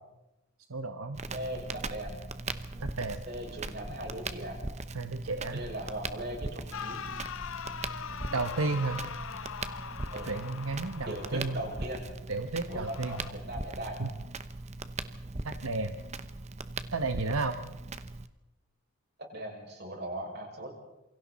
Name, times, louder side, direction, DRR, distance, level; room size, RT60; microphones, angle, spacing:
voice 1, 0.7-1.2 2.8-3.2 4.9-5.6 8.3-9.0 10.3-11.6 12.3-13.2 14.0-14.1 15.4-16.0 16.9-17.6, right 3 dB, 80° right, 7 dB, 1.1 m, -32 dB
Crackle, 1.1-18.3, right 3 dB, 30° right, 0.9 m, -40 dB
voice 2, 1.3-2.2 3.3-4.6 5.5-7.0 10.1-10.3 11.0-12.1 12.7-14.0 19.3-20.7, right 1 dB, 50° right, 0 dB, 6.2 m, -39 dB
sound 1, 6.7-11.8 12.7-13.3, left 6 dB, 70° left, 0.6 m, -41 dB
27.5 x 24.0 x 4.2 m, 0.97 s
head